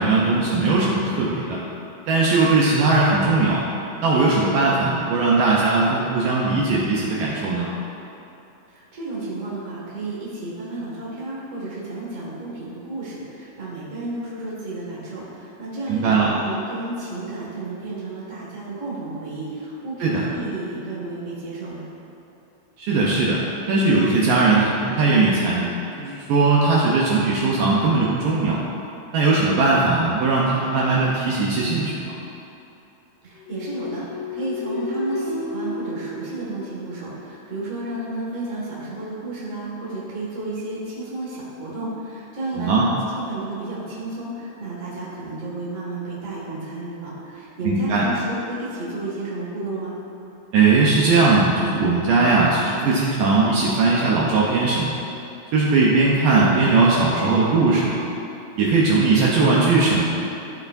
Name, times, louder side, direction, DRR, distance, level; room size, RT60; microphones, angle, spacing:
voice 1, 0.0-1.6 2.1-3.6 4.0-7.7 15.9-16.3 20.0-20.2 22.8-28.6 29.1-32.2 42.6-42.9 47.6-48.1 50.5-55.0 55.5-58.0 58.6-60.2, right 3 dB, 75° right, -5 dB, 2.2 m, -19 dB
voice 2, 8.7-21.8 33.2-50.0, right 2 dB, 35° right, -7 dB, 1.2 m, -32 dB
sound 1, 33.4-37.2, left 2 dB, 90° left, 2.6 m, -31 dB
14.0 x 4.9 x 2.6 m, 2.8 s
omnidirectional pair, 4.4 m